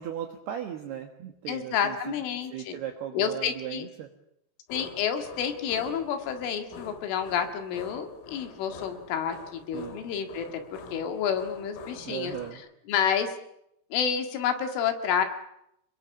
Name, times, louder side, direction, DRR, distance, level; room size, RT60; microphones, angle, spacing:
voice 1, 0.0-2.0 2.5-4.1 9.7-10.0 12.1-12.6, right 10 dB, 65° right, 4 dB, 3.0 m, -37 dB
voice 2, 1.5-2.8 3.1-3.9 4.7-10.6 10.9-12.4 12.9-13.3 13.9-15.3, left 8 dB, 75° left, 6 dB, 4.3 m, -29 dB
sound 1, 4.7-12.5, left 4 dB, 90° left, 5.8 m, -46 dB
27.5 x 21.5 x 7.2 m, 0.78 s
omnidirectional pair, 5.9 m